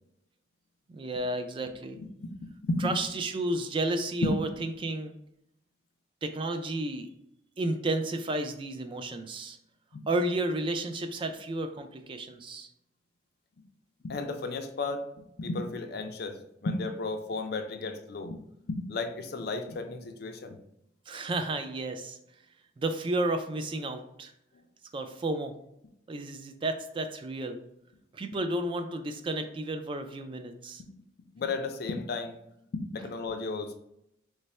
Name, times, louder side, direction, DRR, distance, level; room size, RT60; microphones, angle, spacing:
voice 1, 0.9-2.0 2.8-5.1 6.2-7.1 7.6-9.6 10.1-12.7 21.1-22.2 22.8-24.3 24.9-25.6 26.1-27.6 28.1-30.8, right 2 dB, 30° right, 7 dB, 0.3 m, -32 dB
voice 2, 2.0-2.4 2.6-3.0 4.2-4.4 9.9-10.0 14.0-18.4 18.7-20.6 30.8-30.9 31.4-32.4 32.9-33.7, left 3 dB, 60° left, 6 dB, 0.4 m, -33 dB
3.2 x 2.1 x 4.1 m, 0.78 s
head